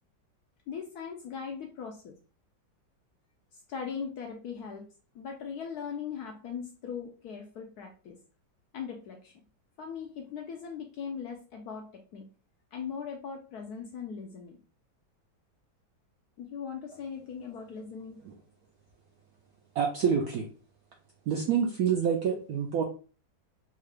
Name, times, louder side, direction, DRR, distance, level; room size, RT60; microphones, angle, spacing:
voice 1, 0.7-2.2 3.5-4.8 5.1-8.2 8.7-9.3 9.8-12.3 12.7-14.6 16.4-18.2, left 6 dB, 70° left, 2 dB, 0.9 m, -39 dB
voice 2, 19.8-20.5 21.3-22.8, right 7 dB, 75° right, 1 dB, 0.8 m, -27 dB
3.6 x 2.3 x 3.2 m, 0.37 s
omnidirectional pair, 2.0 m